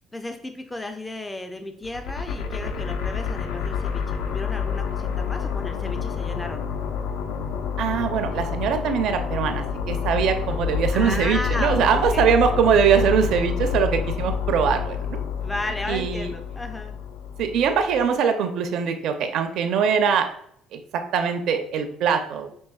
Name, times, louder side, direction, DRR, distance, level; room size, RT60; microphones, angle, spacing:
voice 1, 0.1-6.7 10.9-12.3 15.4-16.9, left 1 dB, 10° left, 6 dB, 0.3 m, -34 dB
sound 1, 1.8-18.0, left 7 dB, 80° left, 0.5 m, -28 dB
voice 2, 7.8-15.2 15.9-16.3 17.4-20.3 20.7-20.8 21.1-22.5, right 7 dB, 55° right, 6 dB, 0.5 m, -22 dB
5.4 x 3.3 x 2.3 m, 0.70 s
cardioid pair, 165°, 0 cm